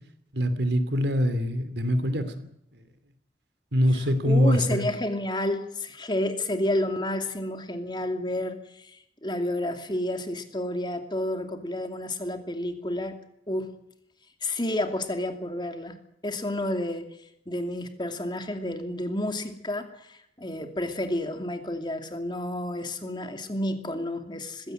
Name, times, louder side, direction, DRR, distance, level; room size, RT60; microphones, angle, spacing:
voice 1, 0.3-2.8 3.7-4.9, equal, 75° right, 11 dB, 2.9 m, -24 dB
voice 2, 4.2-13.2 13.5-13.8 14.4-16.0 16.2-17.2 17.5-24.7, left 1 dB, 25° left, 6 dB, 2.6 m, -30 dB
20.0 x 16.5 x 9.1 m, 0.78 s
head